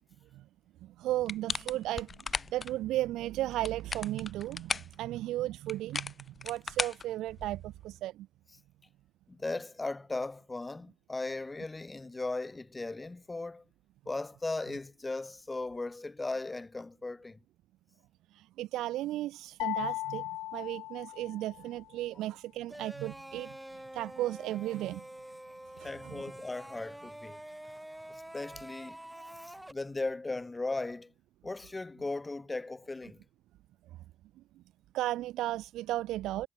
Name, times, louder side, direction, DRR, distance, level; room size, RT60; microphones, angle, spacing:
voice 1, 0.8-8.3 18.3-25.1 25.8-26.2 29.2-29.3 34.9-36.5, right 15 dB, 85° right, 3.7 m, -35 dB
sound 1, 1.3-2.7 3.5-5.0 5.7-7.7, left 5 dB, 40° left, 1.0 m, -36 dB
voice 2, 9.3-13.6 14.0-17.4 25.8-27.4 28.1-29.0 29.4-31.1 31.4-33.2, left 2 dB, 20° left, 3.3 m, -37 dB
sound 2, 19.6-21.7, left 18 dB, 90° left, 1.1 m, -37 dB
sound 3, 22.7-29.7, right 1 dB, 5° right, 3.0 m, -47 dB
cardioid pair, 75°, 0 cm